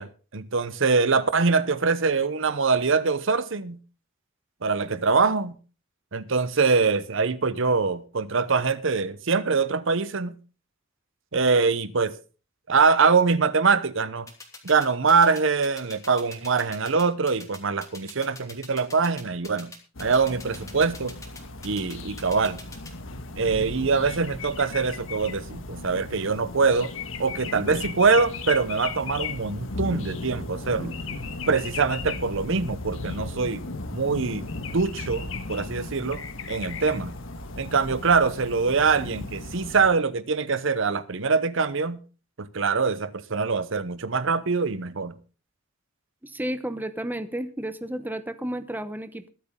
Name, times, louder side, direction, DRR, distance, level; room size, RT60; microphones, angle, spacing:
voice 1, 0.0-3.8 4.6-5.5 6.1-10.3 11.3-12.1 12.7-14.3 14.6-19.7 20.0-21.1 21.6-22.6 23.4-26.9 27.2-30.9 31.5-33.6 33.9-36.2 36.5-37.1 37.6-42.0 42.4-45.1, right 4 dB, 70° right, 0.9 m, -23 dB
sound 1, 14.3-22.9, left 3 dB, 15° left, 3.0 m, -43 dB
sound 2, 20.0-39.9, left 3 dB, 70° left, 1.6 m, -36 dB
voice 2, 46.2-49.3, right 1 dB, 10° right, 0.9 m, -32 dB
22.5 x 8.2 x 3.8 m
head